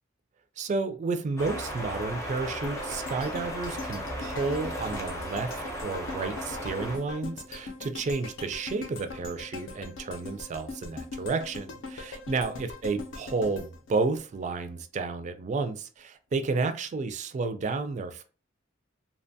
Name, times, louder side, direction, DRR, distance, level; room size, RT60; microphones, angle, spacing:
voice 1, 0.6-18.2, right 3 dB, 40° right, 0.3 m, -31 dB
sound 1, 1.4-7.0, equal, 15° left, 0.6 m, -36 dB
sound 2, 2.6-14.8 15.2-15.3, left 3 dB, 65° left, 0.5 m, -41 dB
2.8 x 2.2 x 2.6 m
head